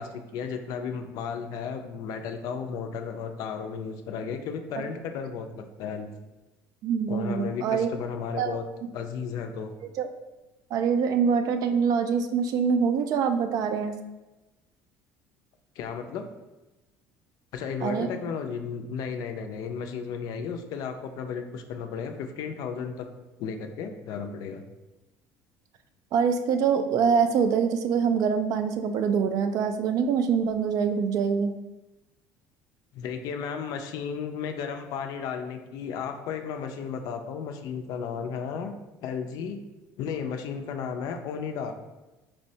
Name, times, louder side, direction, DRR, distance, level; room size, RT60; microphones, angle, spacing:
voice 1, 0.0-6.1 7.1-8.6 8.9-9.7 15.8-16.3 17.5-23.1 23.4-24.6 32.9-38.7 39.0-39.6 40.0-41.8, left 6 dB, 65° left, 6 dB, 0.4 m, -34 dB
voice 2, 6.8-7.9 8.4-8.6 10.0-10.1 10.7-13.9 17.8-18.1 26.1-31.5, right 6 dB, 60° right, 8 dB, 0.3 m, -24 dB
4.4 x 2.0 x 2.7 m, 1.1 s
supercardioid pair, 95°, 7 cm